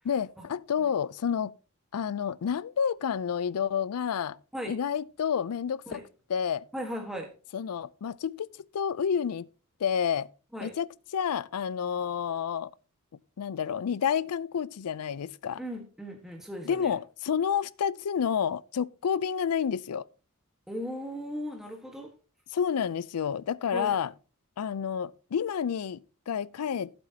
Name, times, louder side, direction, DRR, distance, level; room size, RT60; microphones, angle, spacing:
voice 1, 0.0-1.5 1.9-4.4 4.7-6.0 6.3-6.7 7.5-9.5 9.8-10.3 10.6-12.7 13.4-15.6 16.6-20.1 22.5-24.1 24.6-26.9, left 7 dB, 90° left, 0.4 m, -29 dB
voice 2, 6.7-7.3 10.5-10.7 15.6-16.9 20.7-22.1 23.7-23.9, equal, ahead, 1.4 m, -37 dB
14.0 x 7.8 x 2.8 m
head